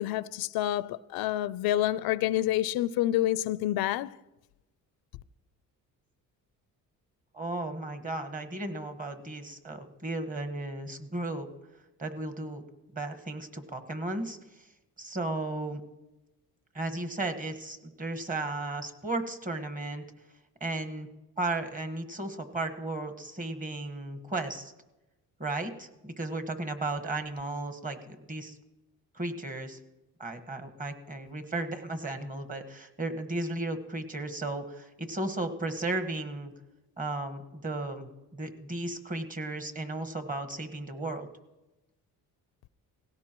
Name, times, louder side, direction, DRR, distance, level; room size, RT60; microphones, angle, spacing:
voice 1, 0.0-4.2, left 14 dB, 85° left, 0.5 m, -28 dB
voice 2, 7.3-11.5 12.0-12.6 12.9-14.4 15.0-15.8 16.7-20.0 20.6-21.1 21.4-24.7 25.4-28.5 29.1-29.8 30.2-36.5 37.0-38.1 38.3-41.3, right 2 dB, 25° right, 1.5 m, -35 dB
18.0 x 16.5 x 3.0 m
cardioid pair, 100°, 35 cm